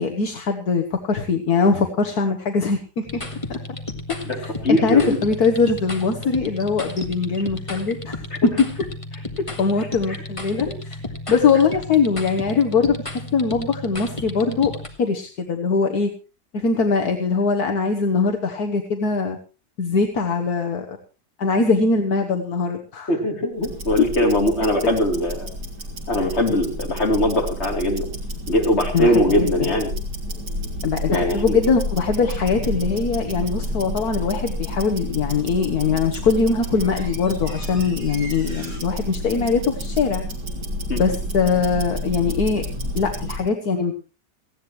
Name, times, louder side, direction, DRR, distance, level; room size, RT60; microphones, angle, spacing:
voice 1, 0.0-3.2 4.4-4.5 4.8-8.2 9.6-11.0 11.3-13.0 13.3-14.7 15.0-16.1 16.5-19.4 19.8-21.0 21.4-23.1 28.9-29.1 29.4-29.7 30.8-40.2 40.9-42.6 43.0-44.0, left 5 dB, 65° left, 4 dB, 1.8 m, -21 dB
sound 1, 3.1-14.9, left 2 dB, 20° left, 1.8 m, -33 dB
voice 2, 4.6-5.2 8.3-8.4 10.1-10.2 23.1-25.5 26.1-28.1 28.5-29.9 31.1-31.6 40.9-41.0, left 1 dB, 40° left, 1 dB, 3.8 m, -21 dB
Tick-tock, 23.6-43.5, equal, 80° right, 3.9 m, -30 dB
sound 2, 32.2-32.3 35.9-36.0 36.3-38.8, right 1 dB, 45° right, 8.0 m, -42 dB
19.0 x 15.5 x 3.2 m, 0.33 s
omnidirectional pair, 1.8 m